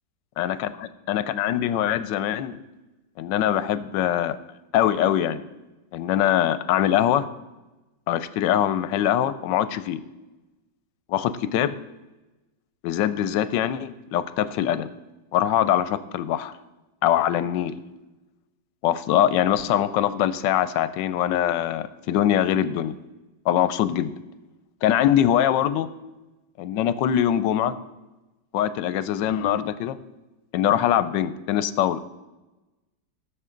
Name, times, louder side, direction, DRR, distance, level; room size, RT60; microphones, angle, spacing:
voice 1, 0.4-2.6 3.2-4.4 4.7-5.4 5.9-7.3 8.1-10.0 11.1-11.8 12.8-14.9 15.3-16.5 17.0-17.7 18.8-22.9 23.5-24.1 24.8-25.9 26.6-27.8 28.5-30.0 30.5-32.0, left 11 dB, 85° left, 14 dB, 1.3 m, -23 dB
15.5 x 6.7 x 3.8 m, 1.1 s
omnidirectional pair, 1.9 m